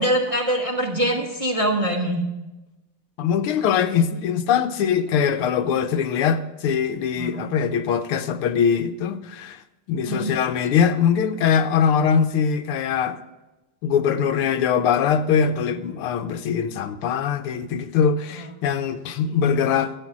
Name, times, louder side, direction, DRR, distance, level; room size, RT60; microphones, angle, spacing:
voice 1, 0.0-2.2 7.2-7.4 10.1-10.3 18.4-18.5, right 1 dB, 20° right, 1.3 m, -23 dB
voice 2, 3.2-9.6 9.9-13.2 13.8-19.9, left 7 dB, 85° left, 1.7 m, -22 dB
13.5 x 8.0 x 6.0 m
omnidirectional pair, 2.4 m